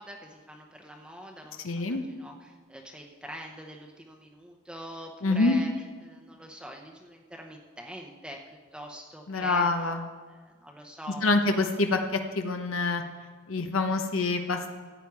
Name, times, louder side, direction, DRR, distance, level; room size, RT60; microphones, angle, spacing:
voice 1, 0.0-5.7 6.0-9.7 10.2-11.4, equal, 5° right, 1 dB, 0.8 m, -44 dB
voice 2, 1.6-2.0 5.2-5.6 9.3-10.0 11.2-13.0 13.5-14.7, left 3 dB, 85° left, 5 dB, 1.0 m, -26 dB
14.5 x 8.7 x 4.7 m, 1.5 s
head